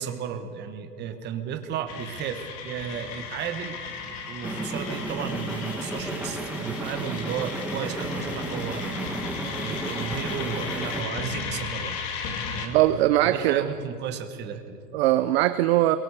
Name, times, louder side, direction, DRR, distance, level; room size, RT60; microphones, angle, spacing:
voice 1, 0.0-3.8 4.3-9.3 9.5-12.0 12.5-12.8 13.2-14.8, right 8 dB, 20° right, 7 dB, 1.3 m, -34 dB
sound 1, 1.9-12.7, left 5 dB, 40° left, 2.9 m, -35 dB
sound 2, 4.4-11.0, right 2 dB, 5° right, 1.3 m, -33 dB
voice 2, 12.7-13.6 14.9-16.0, right 15 dB, 40° right, 12 dB, 0.7 m, -20 dB
30.0 x 22.5 x 4.9 m, 2.8 s
supercardioid pair, 160°, 48 cm